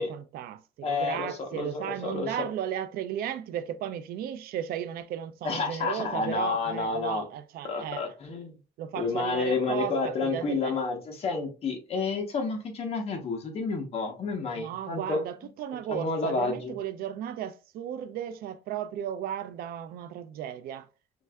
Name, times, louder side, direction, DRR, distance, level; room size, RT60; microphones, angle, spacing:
voice 1, 0.0-8.1 8.8-10.8 14.5-20.9, right 10 dB, 70° right, 0.4 m, -35 dB
voice 2, 0.8-2.3 5.4-7.2 7.7-8.5 8.9-15.2 15.9-16.7, left 4 dB, 40° left, 1.0 m, -30 dB
4.4 x 3.2 x 2.3 m
cardioid pair, 180°, 16 cm